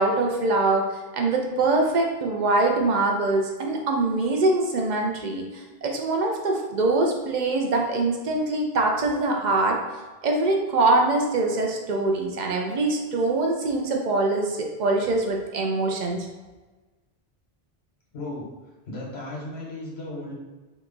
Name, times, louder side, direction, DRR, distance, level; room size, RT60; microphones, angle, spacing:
voice 1, 0.0-9.8 10.2-16.3, right 2 dB, 55° right, 1 dB, 0.6 m, -23 dB
voice 2, 18.1-18.5 18.9-20.3, left 1 dB, 85° left, -3 dB, 1.2 m, -35 dB
2.9 x 2.3 x 3.6 m, 1.2 s
omnidirectional pair, 1.0 m